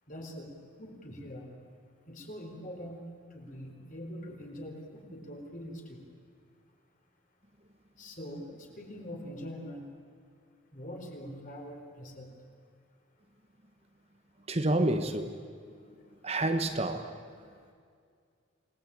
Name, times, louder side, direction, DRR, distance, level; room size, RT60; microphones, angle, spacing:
voice 1, 0.1-0.5 0.8-1.5 2.1-3.0 3.3-6.0 8.0-9.9 10.7-12.3, equal, 40° left, 2 dB, 4.4 m, -43 dB
voice 2, 14.5-15.3 16.2-17.1, right 1 dB, 30° right, 7 dB, 1.1 m, -28 dB
28.5 x 20.0 x 8.9 m, 2.2 s
head